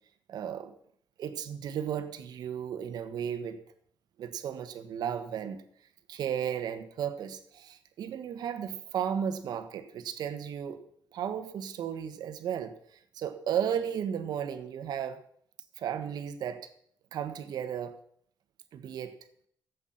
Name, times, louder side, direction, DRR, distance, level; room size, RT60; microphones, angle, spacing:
voice 1, 0.3-0.7 1.2-3.6 4.2-5.6 6.1-10.8 11.1-15.2 15.8-16.7 17.1-17.9 18.7-19.1, right 8 dB, 65° right, 10 dB, 1.3 m, -34 dB
15.5 x 8.3 x 5.8 m, 0.65 s
cardioid pair, 165°, 8 cm